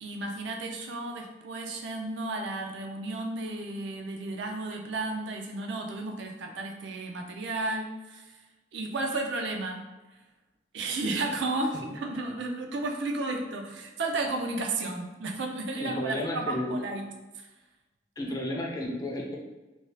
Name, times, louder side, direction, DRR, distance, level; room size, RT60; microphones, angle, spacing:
voice 1, 0.0-8.4 8.7-9.8 10.7-17.0 17.3-17.5, right 2 dB, 70° right, 2 dB, 0.4 m, -33 dB
voice 2, 15.8-16.8 18.2-19.4, left 1 dB, 20° left, -1 dB, 0.3 m, -32 dB
2.7 x 2.3 x 3.2 m, 1.1 s
head